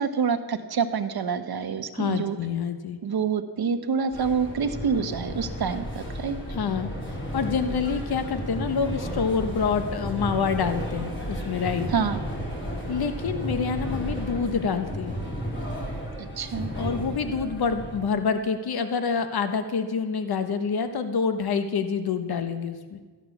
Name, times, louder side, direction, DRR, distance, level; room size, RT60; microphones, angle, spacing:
voice 1, 0.0-2.4 3.0-6.4 11.9-12.2 16.2-16.7, right 6 dB, 55° right, 8 dB, 1.2 m, -27 dB
voice 2, 1.9-3.0 6.5-11.9 12.9-15.1 16.7-23.0, left 5 dB, 60° left, 8 dB, 1.2 m, -27 dB
sound 1, 4.1-18.1, equal, 25° left, 4.7 m, -33 dB
14.5 x 10.5 x 7.2 m, 1.4 s
wide cardioid pair, 110°, 43 cm